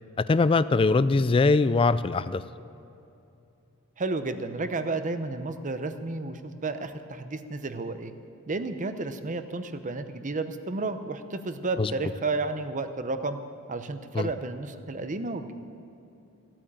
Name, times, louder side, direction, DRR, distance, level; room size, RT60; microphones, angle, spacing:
voice 1, 0.2-2.4 11.8-11.9 14.1-14.3, left 3 dB, 25° left, 15 dB, 0.3 m, -22 dB
voice 2, 4.0-8.1 8.5-13.4 13.7-15.5, right 3 dB, 35° right, 10 dB, 0.8 m, -32 dB
15.5 x 8.8 x 8.7 m, 2.7 s
head